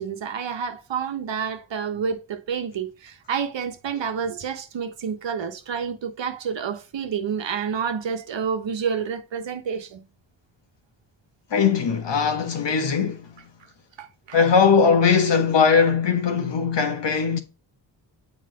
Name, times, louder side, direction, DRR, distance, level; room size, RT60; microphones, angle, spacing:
voice 1, 0.0-10.0 14.0-14.4, right 6 dB, 65° right, 1.2 m, -29 dB
voice 2, 11.5-13.3 14.3-17.4, left 6 dB, 60° left, 1.6 m, -20 dB
7.5 x 5.0 x 3.0 m
cardioid pair, 55°, 48 cm